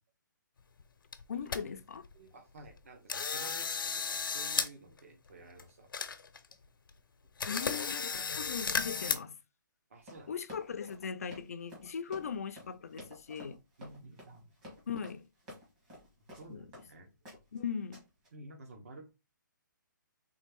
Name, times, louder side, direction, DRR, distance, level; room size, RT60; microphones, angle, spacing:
sound 1, 0.8-0.9 1.1-1.6 2.0-2.1 2.6-2.8 3.1-4.7 5.0-5.1 5.6-5.7 5.9-6.5 6.9-7.0 7.4-9.2, left 5 dB, 85° left, 0.7 m, -34 dB
voice 1, 1.3-2.1 7.4-9.4 10.3-13.6 14.9-15.3 16.5-16.6 17.5-18.0, left 6 dB, 45° left, 0.5 m, -39 dB
voice 2, 2.1-5.9 9.9-10.3 12.1-12.2 13.8-14.5 16.4-17.1 18.3-19.1, right 2 dB, 45° right, 1.2 m, -52 dB
Run, 10.0-16.9 17.3-17.6 17.9-18.3, left 1 dB, 20° right, 1.5 m, -51 dB
4.2 x 3.3 x 3.5 m
hypercardioid pair, 175°, 11 cm